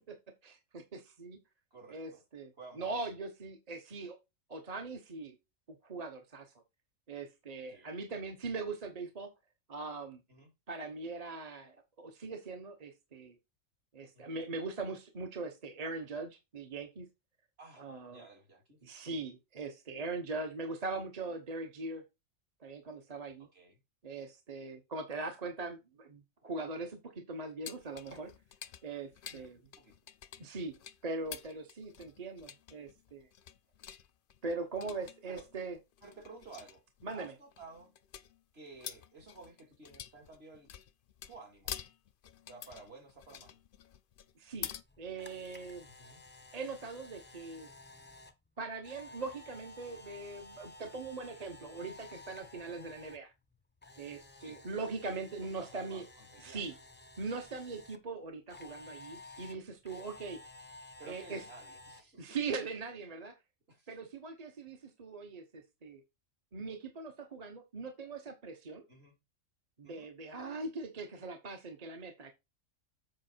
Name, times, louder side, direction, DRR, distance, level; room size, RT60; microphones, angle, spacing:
voice 1, 0.4-1.4 1.9-4.2 4.5-5.4 5.8-6.5 7.1-9.3 9.7-10.2 10.7-13.4 13.9-17.1 17.8-18.2 18.8-22.0 22.6-23.5 24.0-28.3 28.8-29.6 30.4-30.8 31.0-33.3 34.4-35.8 37.0-37.3 44.4-44.7 45.0-45.9 46.5-47.7 48.6-53.3 54.0-56.0 56.4-56.7 57.2-60.4 61.0-61.4 62.2-63.3 63.9-66.0 66.5-68.8 69.8-72.3, right 3 dB, 35° right, 1.0 m, -41 dB
voice 2, 1.7-2.2 2.6-3.1 7.7-8.0 10.3-10.5 14.1-14.4 17.6-18.8 23.4-23.8 29.3-29.9 35.3-35.4 36.0-36.8 37.1-37.9 38.5-40.7 41.3-41.7 42.5-43.6 45.8-46.2 52.6-52.8 54.4-54.6 55.5-56.6 60.2-60.3 61.0-62.4 63.7-64.0 68.9-69.2 69.8-70.1, right 3 dB, 50° right, 2.5 m, -54 dB
sound 1, 27.6-44.8, left 9 dB, 55° left, 0.6 m, -48 dB
Camera, 44.8-53.2 53.5-58.0 58.5-62.0, left 2 dB, 10° left, 0.7 m, -53 dB
7.9 x 5.0 x 4.4 m
omnidirectional pair, 1.4 m